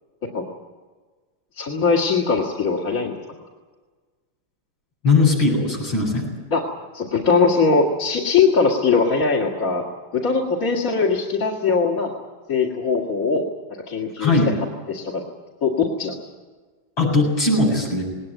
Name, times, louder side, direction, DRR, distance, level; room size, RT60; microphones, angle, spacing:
voice 1, 1.6-3.2 6.5-6.6 6.9-9.9 10.1-12.1 12.5-13.4 13.9-14.3 14.9-15.3 15.6-16.2, left 4 dB, 45° left, -3 dB, 2.6 m, -20 dB
voice 2, 5.0-6.3 14.2-14.5 17.0-18.0, left 3 dB, 85° left, -1 dB, 8.3 m, -19 dB
20.0 x 19.0 x 9.3 m, 1.4 s
omnidirectional pair, 2.1 m